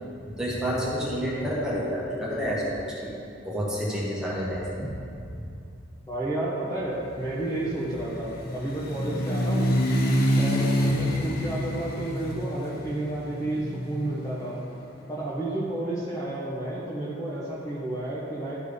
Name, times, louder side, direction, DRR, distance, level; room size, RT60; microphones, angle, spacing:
voice 1, 0.2-3.1 3.4-4.9 5.1-5.2, equal, 5° right, -6 dB, 1.6 m, -29 dB
voice 2, 6.1-9.7 10.3-14.6 15.1-18.6, right 1 dB, 15° left, -8 dB, 1.0 m, -31 dB
sound 1, 7.0-15.0, equal, 45° left, 0.8 m, -27 dB
13.0 x 4.5 x 5.1 m, 2.6 s
head